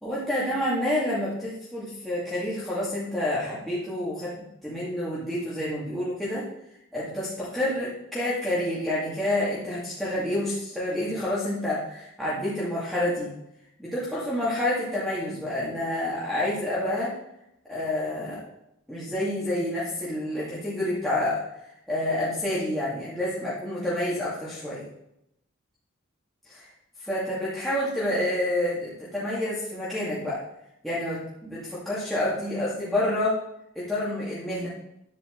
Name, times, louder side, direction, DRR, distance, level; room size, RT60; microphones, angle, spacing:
voice 1, 0.0-6.4 6.9-13.3 13.8-17.1 17.7-18.4 18.9-21.4 21.9-24.8 26.5-26.7 27.0-30.4 30.8-33.3 33.8-34.7, left 1 dB, ahead, -10 dB, 2.2 m, -28 dB
10.5 x 9.1 x 3.9 m, 0.82 s
head